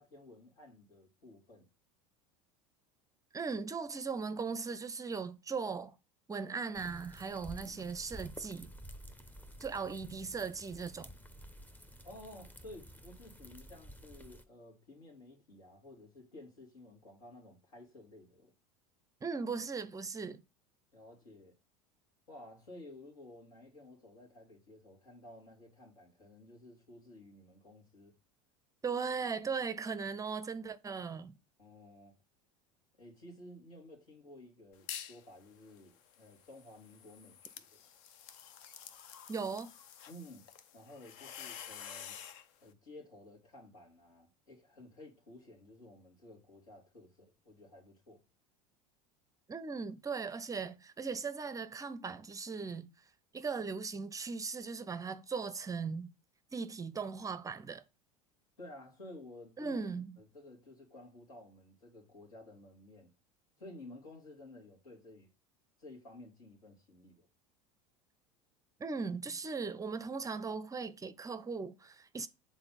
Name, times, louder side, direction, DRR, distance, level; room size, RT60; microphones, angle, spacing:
voice 1, 0.0-1.7 7.6-7.8 9.7-9.9 12.0-18.5 20.9-21.5 22.3-28.1 31.6-32.2 33.0-37.9 40.1-42.2 42.6-48.2 58.6-59.8 60.2-63.1 63.6-65.3 65.8-67.3, left 1 dB, 80° left, 2.8 m, -54 dB
voice 2, 3.3-5.9 6.3-8.7 9.6-11.1 19.2-20.4 28.8-31.3 39.3-39.7 49.5-52.9 53.3-56.1 56.5-57.8 59.6-60.2 68.8-72.3, right 5 dB, 20° right, 0.5 m, -38 dB
sound 1, 6.7-14.4, equal, 10° left, 0.8 m, -51 dB
sound 2, 34.7-35.2 35.6-42.5, left 9 dB, 60° left, 0.7 m, -49 dB
6.9 x 4.0 x 4.1 m
hypercardioid pair, 80°, 17 cm